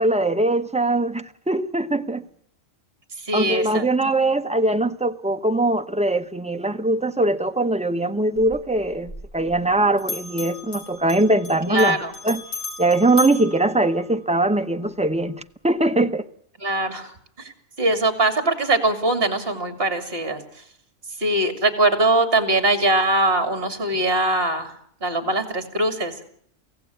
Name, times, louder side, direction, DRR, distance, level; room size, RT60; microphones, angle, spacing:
voice 1, 0.0-2.2 3.3-12.4 12.8-16.2, right 2 dB, 5° right, 0.6 m, -21 dB
voice 2, 3.3-3.8 11.7-12.1 16.6-17.1 17.8-20.4 21.2-24.7 25.0-26.1, right 2 dB, 45° right, 3.1 m, -21 dB
Bell, 8.4-9.7 10.0-14.5, left 3 dB, 60° left, 3.9 m, -36 dB
24.0 x 16.5 x 9.4 m
omnidirectional pair, 1.4 m